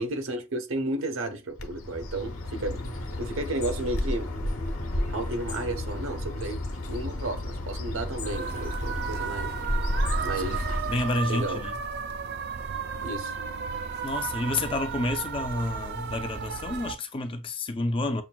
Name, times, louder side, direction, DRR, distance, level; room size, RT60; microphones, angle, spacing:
voice 1, 0.0-2.8 3.2-4.3 5.1-9.6 10.2-10.6 11.3-11.6 13.0-13.4, right 2 dB, 70° right, 0.8 m, -33 dB
Bird, 1.6-11.3, left 1 dB, 75° left, 1.0 m, -32 dB
sound 1, 8.2-16.9, right 6 dB, 50° right, 0.4 m, -34 dB
voice 2, 10.9-11.7 14.0-18.2, left 2 dB, 25° left, 0.4 m, -29 dB
7.1 x 2.6 x 2.2 m
head